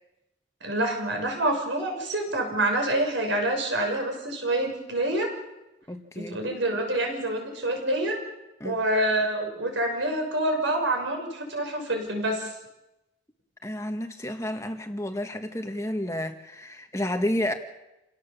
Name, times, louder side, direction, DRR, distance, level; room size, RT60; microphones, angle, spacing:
voice 1, 0.6-5.3 6.1-8.2 8.6-12.5, right 1 dB, 80° right, 2 dB, 6.4 m, -27 dB
voice 2, 5.9-6.4 8.6-8.8 13.6-17.5, left 1 dB, 15° left, 6 dB, 1.4 m, -31 dB
28.5 x 17.5 x 7.0 m, 0.96 s
head